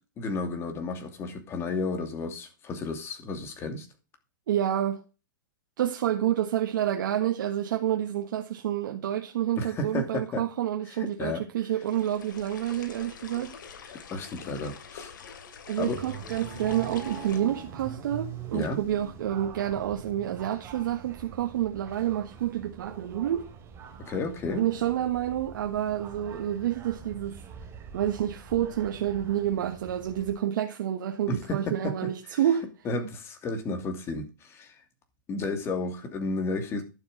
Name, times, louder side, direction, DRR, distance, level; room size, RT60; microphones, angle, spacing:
voice 1, 0.2-3.9 9.6-10.4 10.9-11.4 13.8-15.1 15.8-16.0 18.5-18.8 24.0-24.6 31.3-31.9 32.3-32.4 32.8-34.8 35.3-36.8, left 3 dB, 25° left, 2.7 m, -32 dB
voice 2, 4.5-5.0 5.8-13.5 15.7-23.5 24.6-27.4 27.9-32.6, right 11 dB, 70° right, 1.5 m, -28 dB
sound 1, 11.8-17.4, left 7 dB, 75° left, 2.8 m, -45 dB
sound 2, 15.9-30.3, right 7 dB, 25° right, 2.9 m, -44 dB
11.5 x 7.0 x 5.2 m
hypercardioid pair, 140°, 11 cm